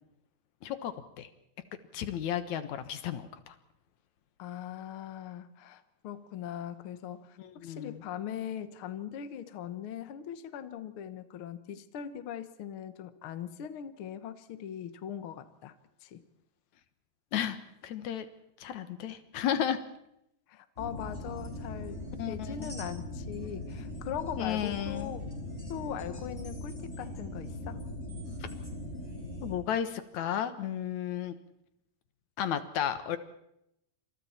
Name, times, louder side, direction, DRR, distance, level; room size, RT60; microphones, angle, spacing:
voice 1, 0.6-1.3 1.9-3.6 7.4-8.0 17.3-18.3 18.6-19.8 22.2-22.7 24.4-25.1 28.4-28.5 29.4-31.4 32.4-33.2, left 9 dB, 60° left, 10 dB, 2.2 m, -33 dB
voice 2, 4.4-15.7 16.0-16.2 20.5-25.2 25.7-27.8, left 9 dB, 85° left, 11 dB, 1.2 m, -40 dB
sound 1, 20.8-29.5, left 1 dB, 15° left, 5.8 m, -40 dB
28.0 x 26.5 x 4.4 m, 0.81 s
omnidirectional pair, 4.3 m